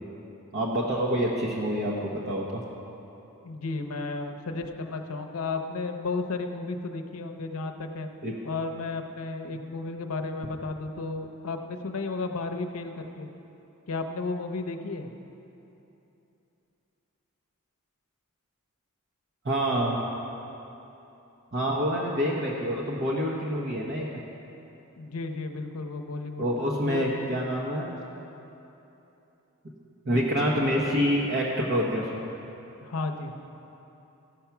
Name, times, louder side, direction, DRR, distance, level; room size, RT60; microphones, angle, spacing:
voice 1, 0.5-2.6 8.2-8.3 9.5-9.6 19.4-20.0 21.5-24.1 26.4-27.9 30.0-32.3, equal, 50° right, -4 dB, 0.9 m, -27 dB
voice 2, 3.4-8.1 8.4-13.3 13.9-15.1 25.0-27.1 32.8-33.3, left 3 dB, 80° left, 4 dB, 0.7 m, -33 dB
15.0 x 5.7 x 5.9 m, 3.0 s
head